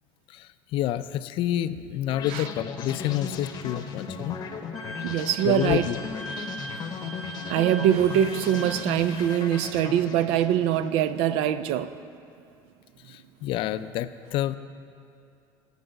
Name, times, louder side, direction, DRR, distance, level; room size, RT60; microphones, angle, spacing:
voice 1, 0.3-4.4 5.4-6.0 13.1-14.6, left 13 dB, 60° left, 13 dB, 0.4 m, -28 dB
sound 1, 2.1-11.2, left 5 dB, 40° left, 0.8 m, -37 dB
Wind instrument woodwind instrument, 4.7-9.4, right 1 dB, ahead, 0.9 m, -40 dB
voice 2, 5.0-5.9 7.5-11.9, right 10 dB, 70° right, 13 dB, 0.5 m, -23 dB
12.0 x 4.8 x 7.9 m, 2.5 s
cardioid pair, 125°, 10 cm